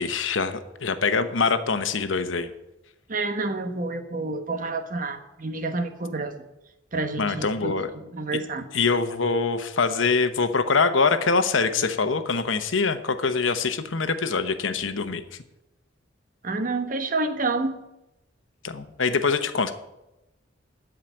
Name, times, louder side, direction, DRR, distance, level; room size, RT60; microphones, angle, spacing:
voice 1, 0.0-2.5 7.2-7.9 8.7-15.4 18.6-19.7, left 4 dB, 85° left, 10 dB, 1.0 m, -24 dB
voice 2, 3.1-6.4 6.9-8.6 16.4-17.8, right 3 dB, 45° right, 8 dB, 1.0 m, -29 dB
13.5 x 5.0 x 9.1 m, 0.95 s
head